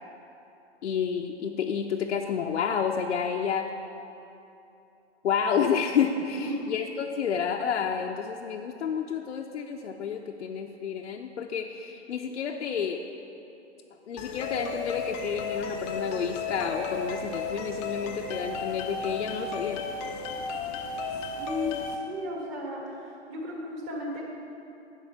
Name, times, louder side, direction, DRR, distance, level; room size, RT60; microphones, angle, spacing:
voice 1, 0.8-3.7 5.2-13.0 14.1-19.9, left 7 dB, 85° left, 1 dB, 0.6 m, -30 dB
sound 1, 14.2-22.0, left 4 dB, 20° left, 0.4 m, -34 dB
voice 2, 21.2-23.0 23.3-24.2, left 1 dB, 30° right, -2 dB, 1.8 m, -35 dB
10.5 x 4.3 x 5.7 m, 2.8 s
hypercardioid pair, 125°, 34 cm